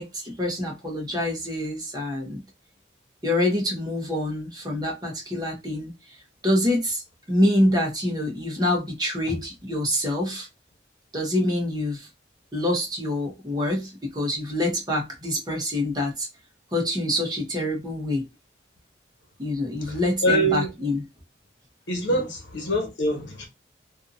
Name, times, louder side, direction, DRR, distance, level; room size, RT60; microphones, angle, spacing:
voice 1, 0.0-2.4 3.2-5.9 6.4-7.0 7.3-10.5 11.1-12.1 12.5-16.3 16.7-18.3 19.4-21.0 22.1-22.2, left 1 dB, 20° right, 0.9 m, -26 dB
voice 2, 19.8-20.7 21.9-23.5, right 1 dB, 75° left, 1.2 m, -25 dB
2.7 x 2.6 x 2.5 m
head